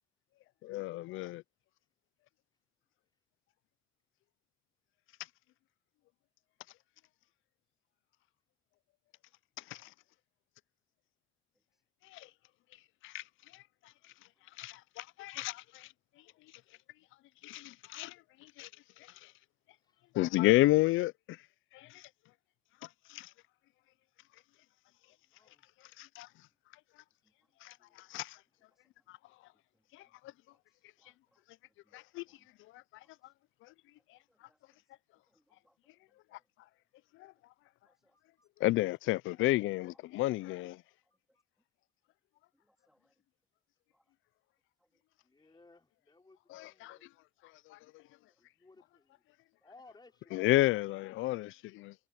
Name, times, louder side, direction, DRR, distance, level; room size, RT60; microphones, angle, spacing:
voice 1, 0.6-1.4 9.6-9.9 12.0-12.3 13.0-13.2 13.5-13.6 14.6-15.9 17.4-18.7 19.0-19.3 20.1-21.4 21.7-22.1 23.1-23.3 26.0-26.3 27.6-28.4 29.1-29.2 29.9-30.1 31.9-32.2 32.7-32.8 33.6-33.7 36.3-36.4 37.2-37.3 38.6-40.8 46.5-47.0 47.7-48.0 50.3-51.9, left 17 dB, 85° left, 0.4 m, -32 dB
voice 2, 19.7-20.1 25.0-25.9 27.8-28.1 38.1-38.5 40.8-40.9 41.3-41.4 45.2-47.1 48.4-49.2 49.6-50.7, left 3 dB, 20° left, 5.1 m, -62 dB
voice 3, 30.7-31.4 31.9-32.5 33.2-33.3 34.3-34.8 35.3-35.8 37.8-38.2 42.6-43.1 43.9-44.0, equal, ahead, 2.1 m, -76 dB
cardioid pair, 90°, 20 cm